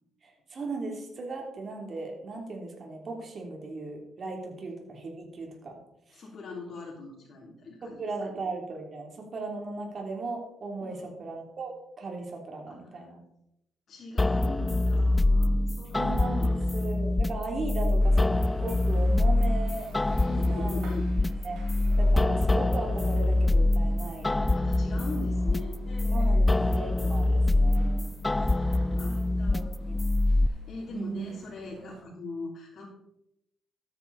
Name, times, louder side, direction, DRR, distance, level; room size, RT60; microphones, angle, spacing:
voice 1, 0.2-5.8 6.1-6.2 7.8-13.2 15.9-18.3 18.6-19.9 20.4-20.9 21.4-21.6 22.0-24.3 24.9-25.1 26.1-28.1 29.0-30.0 30.9-31.3, right 3 dB, 45° right, 1 dB, 3.3 m, -37 dB
voice 2, 6.1-8.4 10.8-11.1 12.7-13.1 13.9-16.0 16.3-16.6 20.3-21.1 24.5-26.9 28.4-29.8 30.4-32.9, left 3 dB, 55° left, -5 dB, 3.4 m, -42 dB
sound 1, 14.2-30.5, left 2 dB, 15° left, 0.4 m, -25 dB
sound 2, 18.0-32.0, right 3 dB, 80° right, 3.2 m, -51 dB
13.0 x 9.0 x 4.2 m, 0.82 s
cardioid pair, 90°, 0 cm